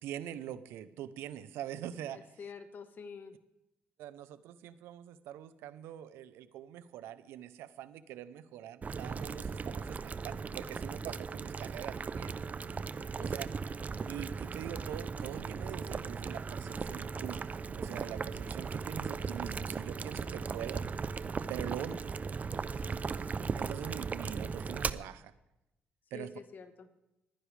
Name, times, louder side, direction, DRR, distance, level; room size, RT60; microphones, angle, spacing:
voice 1, 0.0-2.2 4.0-12.3 13.2-13.5 14.1-20.8 21.5-22.0 23.6-25.3 26.1-26.3, right 11 dB, 85° right, 14 dB, 0.7 m, -43 dB
voice 2, 2.1-3.3 13.0-13.3 21.6-22.0 26.1-26.9, left 5 dB, 50° left, 8 dB, 1.4 m, -48 dB
Boiling, 8.8-24.9, right 5 dB, 40° right, 0.6 m, -37 dB
26.5 x 10.0 x 3.4 m, 0.95 s
supercardioid pair, 65°, 4 cm